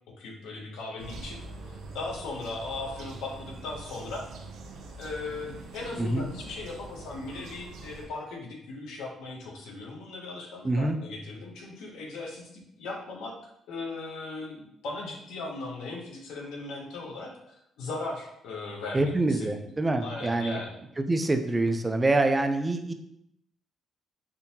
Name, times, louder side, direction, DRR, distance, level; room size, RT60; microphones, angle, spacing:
voice 1, 0.2-1.4 1.6-4.2 5.0-13.3 13.7-19.5 20.0-20.8, left 3 dB, 85° left, 0 dB, 0.8 m, -38 dB
sound 1, 1.0-8.1, right 3 dB, 75° right, 0.5 m, -44 dB
voice 2, 10.6-11.0 18.9-20.6 21.0-22.9, right 2 dB, 20° right, 6 dB, 0.3 m, -26 dB
3.6 x 2.6 x 2.8 m, 0.78 s
cardioid pair, 90°, 0 cm